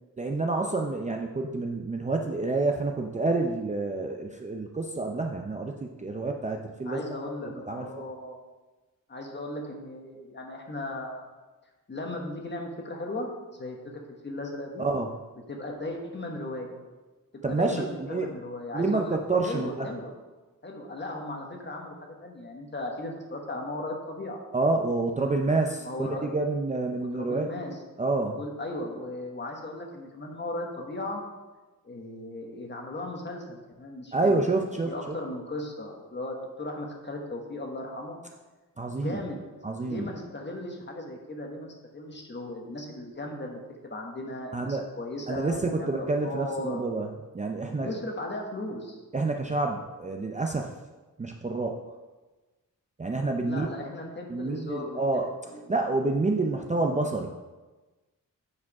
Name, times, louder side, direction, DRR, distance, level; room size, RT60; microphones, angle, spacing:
voice 1, 0.2-7.2 7.4-8.0 14.8-15.1 17.4-18.3 18.7-19.9 24.5-27.5 28.0-28.4 34.1-35.2 38.8-39.2 39.6-40.1 44.5-44.9 45.3-47.1 47.3-47.9 49.1-50.7 51.2-51.8 53.0-53.7 54.3-55.3 55.7-57.3, right 3 dB, 20° right, 2 dB, 0.4 m, -28 dB
voice 2, 6.8-8.4 9.1-11.2 11.9-13.3 13.6-14.9 15.5-16.8 17.5-19.2 19.4-20.1 20.6-24.4 25.8-26.3 26.9-27.8 28.3-31.2 31.8-34.5 34.9-38.2 38.9-39.4 39.8-46.8 47.8-49.0 53.4-55.0 55.4-55.7, left 1 dB, 35° left, 1 dB, 1.2 m, -37 dB
8.7 x 4.7 x 4.7 m, 1.2 s
wide cardioid pair, 175°, 33 cm